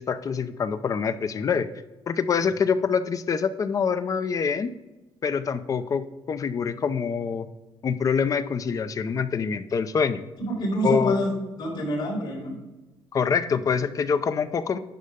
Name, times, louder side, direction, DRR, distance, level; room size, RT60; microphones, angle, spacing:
voice 1, 0.0-1.7 2.1-4.7 5.2-7.5 7.8-10.2 10.8-11.3 13.1-14.8, left 6 dB, 35° left, 12 dB, 0.6 m, -25 dB
voice 2, 10.4-11.3 11.6-12.6 13.5-13.6, right 1 dB, 60° left, -7 dB, 3.4 m, -27 dB
10.5 x 6.6 x 3.6 m, 1.1 s
cardioid pair, 135°, 9 cm